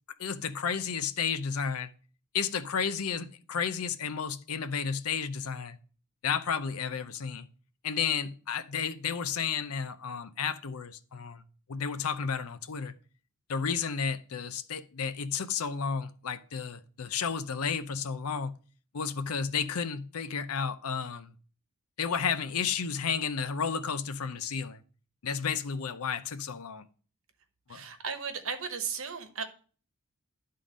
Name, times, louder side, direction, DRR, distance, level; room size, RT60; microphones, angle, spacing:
voice 1, 0.2-1.9 2.3-5.8 6.2-7.5 7.8-11.4 11.7-12.9 13.5-18.5 18.9-21.3 22.0-24.8 25.2-26.9 27.7-27.8, left 6 dB, 75° left, 0.6 m, -32 dB
voice 2, 27.7-29.4, right 6 dB, 65° right, 1.1 m, -35 dB
11.5 x 3.8 x 5.0 m
head